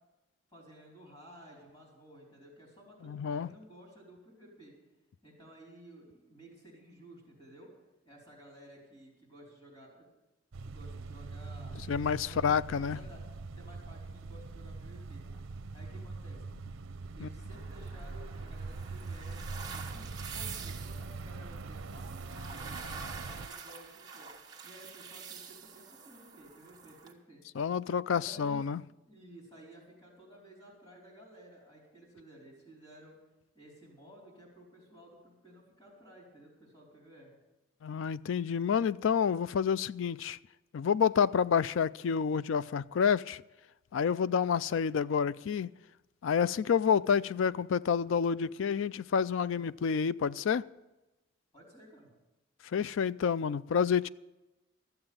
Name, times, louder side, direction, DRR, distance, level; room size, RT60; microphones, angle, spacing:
voice 1, 0.5-4.8 5.2-7.7 8.0-10.1 10.6-13.2 13.5-15.4 15.7-16.4 17.1-24.3 24.6-27.4 28.1-28.6 29.0-33.1 33.5-37.3 51.5-52.1, equal, 30° left, 4.2 m, -54 dB
voice 2, 3.0-3.5 11.9-13.0 17.2-17.3 27.6-28.8 37.8-40.4 40.7-43.4 43.9-45.7 46.2-50.7 52.7-54.1, left 7 dB, 75° left, 0.3 m, -29 dB
sound 1, 10.5-23.5, right 3 dB, 90° right, 0.6 m, -42 dB
sound 2, 17.5-27.1, right 6 dB, 20° right, 1.2 m, -47 dB
13.5 x 7.8 x 8.8 m
head